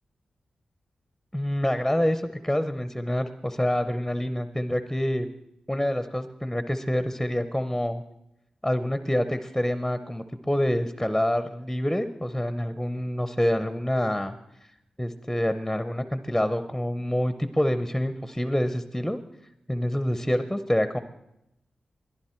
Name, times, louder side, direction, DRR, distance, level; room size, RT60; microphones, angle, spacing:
voice 1, 1.3-5.3 5.7-8.0 8.6-14.3 15.0-19.2 19.7-21.0, equal, 5° left, 10 dB, 0.6 m, -27 dB
22.0 x 11.0 x 4.4 m, 0.87 s
wide cardioid pair, 110°, 2 cm